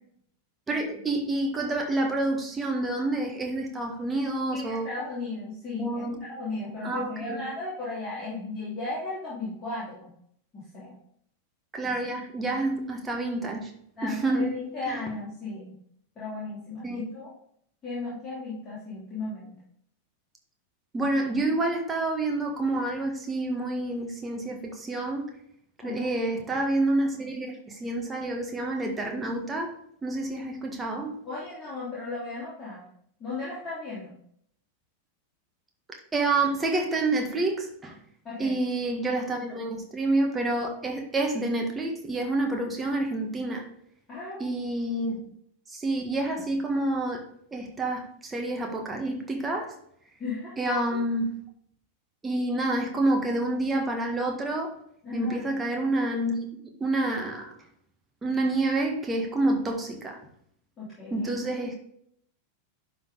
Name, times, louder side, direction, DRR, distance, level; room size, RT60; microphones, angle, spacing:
voice 1, 0.7-4.9 5.8-6.2 6.8-7.4 11.7-13.7 14.0-14.5 14.9-15.0 16.8-17.1 20.9-25.3 25.8-29.7 30.0-31.2 35.9-38.0 38.4-43.7 44.4-45.2 45.7-47.3 47.5-49.7 50.6-51.3 52.2-54.7 55.1-56.5 56.8-57.5 58.2-60.2 61.1-61.8, right 2 dB, 15° right, 2 dB, 1.6 m, -28 dB
voice 2, 4.5-10.1 10.5-11.0 14.0-15.7 16.1-17.3 17.8-19.5 25.8-26.2 31.2-32.8 33.2-34.2 38.2-38.5 44.1-44.6 45.1-45.2 50.2-50.8 55.0-55.5 60.8-61.3, left 3 dB, 20° left, -9 dB, 3.2 m, -35 dB
11.0 x 4.2 x 3.8 m, 0.69 s
figure-of-eight pair, 90°, 0 cm